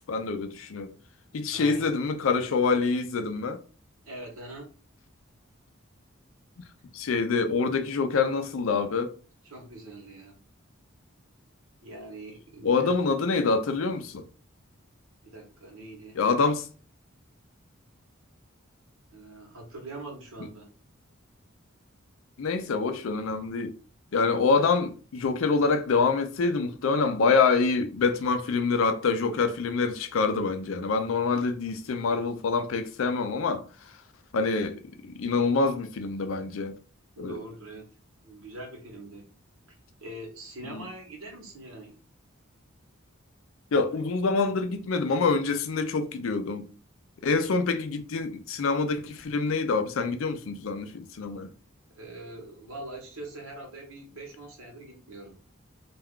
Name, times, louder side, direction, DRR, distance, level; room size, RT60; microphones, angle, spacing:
voice 1, 0.1-0.9 1.3-3.6 6.9-9.1 12.6-14.3 16.1-16.7 22.4-23.7 24.1-34.0 34.3-36.8 37.2-37.4 40.6-40.9 43.7-46.7 47.2-51.5, left 4 dB, 70° left, 0.4 m, -26 dB
voice 2, 1.5-1.9 4.0-4.7 9.4-10.4 11.8-13.3 15.3-16.2 19.1-20.7 24.1-24.5 37.2-37.9 38.2-39.3 39.7-42.0 47.4-47.7 51.9-55.4, right 2 dB, 80° right, 1.0 m, -43 dB
2.3 x 2.2 x 3.5 m
head